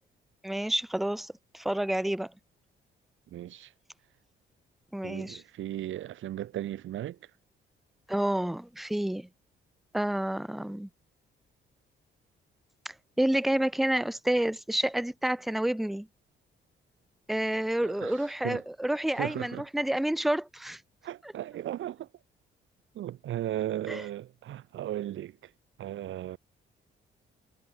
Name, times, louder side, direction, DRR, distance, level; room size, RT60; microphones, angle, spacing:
voice 1, 0.4-2.3 4.9-5.4 8.1-9.3 9.9-10.9 12.9-16.1 17.3-20.8 23.9-24.0, right 1 dB, ahead, 0.3 m, -29 dB
voice 2, 3.3-3.7 5.0-7.2 17.8-18.6 19.1-19.7 21.0-22.1 22.9-25.5 25.8-26.4, right 12 dB, 75° right, 3.6 m, -36 dB
cardioid pair, 90°, 20 cm